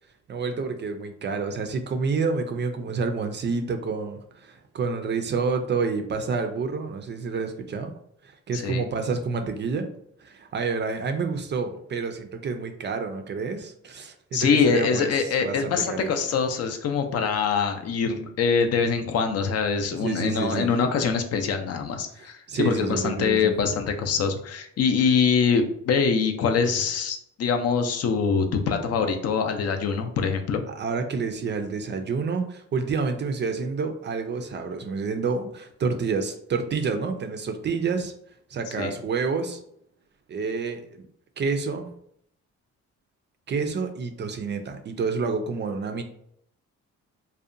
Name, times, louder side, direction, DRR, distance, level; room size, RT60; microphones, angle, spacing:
voice 1, 0.3-7.9 8.5-9.9 10.2-15.1 15.4-16.1 20.0-20.7 22.2-23.5 30.7-38.1 38.5-39.6 40.3-41.1 41.4-41.9 43.5-46.0, right 4 dB, 40° right, 6 dB, 0.4 m, -28 dB
voice 2, 8.5-8.9 14.3-30.6 38.8-38.9, left 5 dB, 55° left, 6 dB, 0.5 m, -24 dB
2.7 x 2.2 x 2.5 m, 0.69 s
cardioid pair, 90°, 30 cm